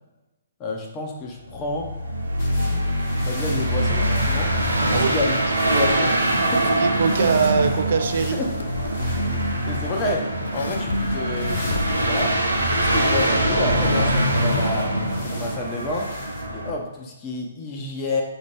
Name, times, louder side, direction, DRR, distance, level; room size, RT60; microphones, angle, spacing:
voice 1, 0.6-1.9 3.2-4.5 4.9-5.4 5.7-6.6 7.2-7.3 8.3-8.5 9.3-11.6 12.0-14.9 15.2-16.1 16.5-18.2, left 2 dB, 25° left, 0 dB, 0.8 m, -29 dB
sound 1, 1.5-16.7, right 1 dB, 85° right, 0.7 m, -23 dB
sound 2, 2.4-16.4, left 2 dB, 40° left, 1.2 m, -43 dB
voice 2, 4.9-5.2 6.8-8.5, right 6 dB, 60° right, 8 dB, 0.3 m, -22 dB
sound 3, 8.0-13.2, left 3 dB, 70° left, 0.3 m, -34 dB
4.2 x 2.8 x 3.3 m, 1.1 s
figure-of-eight pair, 125°, 0 cm